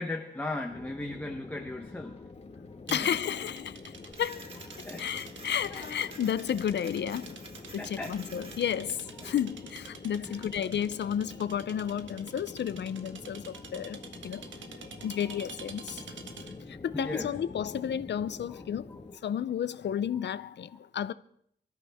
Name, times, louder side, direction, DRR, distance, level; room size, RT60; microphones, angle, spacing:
voice 1, 0.0-2.3 2.9-3.1 4.8-5.0 5.7-5.8 7.8-8.2 10.2-10.5 13.5-13.6 14.8-14.9 16.4-16.6 16.9-17.3, left 2 dB, 10° left, 1.0 m, -37 dB
sound 1, 0.7-19.2, left 3 dB, 30° left, 1.5 m, -47 dB
voice 2, 2.9-4.5 4.8-7.4 7.7-14.4 15.0-16.0 16.7-18.9 19.2-21.1, left 9 dB, 65° left, 0.6 m, -32 dB
sound 2, 2.9-16.7, right 5 dB, 85° right, 1.5 m, -48 dB
Printer, 4.1-9.5, right 2 dB, 30° right, 2.2 m, -51 dB
26.0 x 13.0 x 3.6 m
wide cardioid pair, 175°, 19 cm